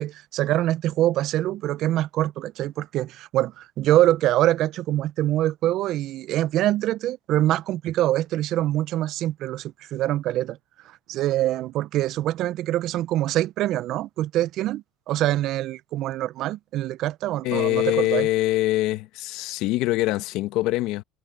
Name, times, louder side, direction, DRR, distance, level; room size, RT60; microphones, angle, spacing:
voice 1, 0.0-10.6 11.1-18.3, right 14 dB, 60° right, 0.5 m, -24 dB
voice 2, 17.4-21.0, left 17 dB, 70° left, 1.1 m, -24 dB
supercardioid pair, 105°, 0 cm